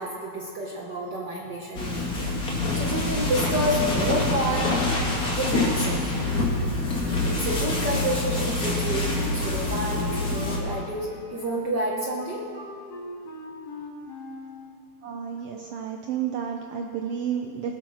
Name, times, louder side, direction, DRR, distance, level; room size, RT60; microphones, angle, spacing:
voice 1, 0.0-2.3 2.7-4.8 5.4-6.3 7.2-12.4 15.5-15.6 16.3-16.4, right 1 dB, 65° right, -3 dB, 1.0 m, -30 dB
sound 1, 1.7-10.6, left 2 dB, 35° left, 2.0 m, -26 dB
Wind instrument woodwind instrument, 8.8-14.6, left 2 dB, 90° left, 3.7 m, -40 dB
voice 2, 15.0-17.8, right 8 dB, 85° right, 3 dB, 1.3 m, -31 dB
20.5 x 7.5 x 6.3 m, 2.4 s
omnidirectional pair, 3.6 m